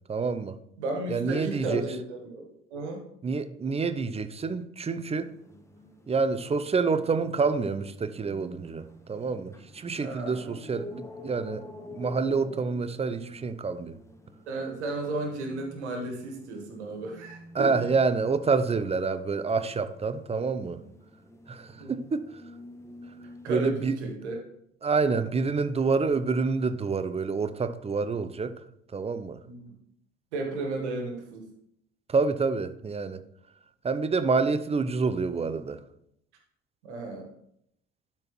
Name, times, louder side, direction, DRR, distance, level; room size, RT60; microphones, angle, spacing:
voice 1, 0.1-0.6 1.1-1.8 3.2-5.3 6.1-11.6 11.9-13.9 17.5-20.8 21.5-22.3 23.5-24.0 24.8-28.5 28.9-29.4 32.1-33.2 33.8-35.8, right 4 dB, 20° right, 0.5 m, -27 dB
voice 2, 0.8-3.1 10.0-10.5 14.5-17.7 21.7-22.0 23.4-24.5 29.4-29.7 30.3-31.5 36.8-37.3, right 2 dB, 75° right, 1.4 m, -34 dB
sound 1, 5.2-23.9, left 1 dB, 10° left, 1.0 m, -48 dB
12.0 x 4.3 x 3.1 m
figure-of-eight pair, 55°, 34 cm